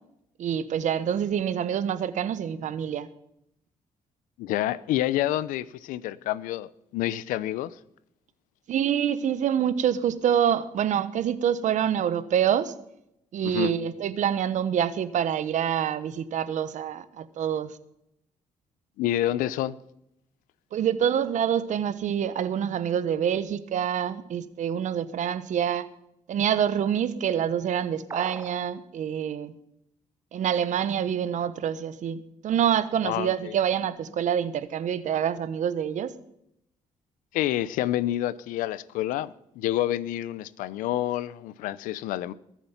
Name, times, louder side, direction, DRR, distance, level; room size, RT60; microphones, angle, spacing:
voice 1, 0.4-3.1 8.7-12.7 13.3-17.7 20.7-25.9 26.3-29.5 30.3-36.1, right 9 dB, 65° right, 1.1 m, -26 dB
voice 2, 4.4-7.8 13.4-13.7 19.0-19.8 33.0-33.5 37.3-42.3, left 13 dB, 85° left, 0.6 m, -28 dB
sound 1, 28.1-28.7, right 4 dB, 25° right, 0.8 m, -38 dB
22.0 x 7.4 x 5.8 m
supercardioid pair, 70°, 14 cm